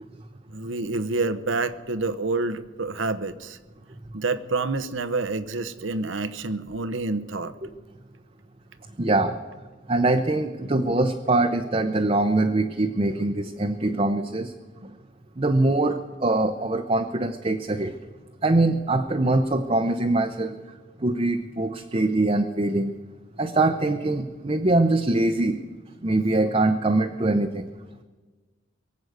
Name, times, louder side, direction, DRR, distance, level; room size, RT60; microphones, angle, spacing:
voice 1, 0.5-3.6 4.1-7.5, right 3 dB, 85° right, 13 dB, 0.9 m, -28 dB
voice 2, 9.0-9.4 9.9-14.5 14.8-14.9 15.4-17.9 18.4-20.6 21.0-22.9 23.4-25.6 26.0-27.7, right 2 dB, 30° right, 4 dB, 0.6 m, -23 dB
23.0 x 7.9 x 8.0 m, 1.3 s
head